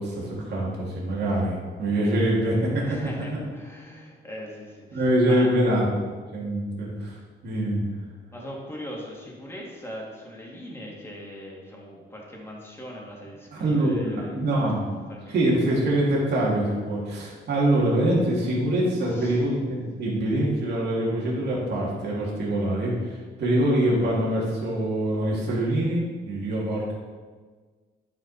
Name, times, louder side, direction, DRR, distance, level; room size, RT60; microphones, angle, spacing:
voice 1, 0.0-3.0 4.9-6.0 6.3-7.1 7.4-7.9 13.5-15.0 15.3-26.9, right 1 dB, 60° right, -5 dB, 2.6 m, -24 dB
voice 2, 2.8-5.5 8.3-14.7 15.1-15.6 19.0-19.4, equal, 10° left, -3 dB, 2.5 m, -40 dB
10.5 x 5.2 x 4.3 m, 1.5 s
cardioid pair, 90°, 20 cm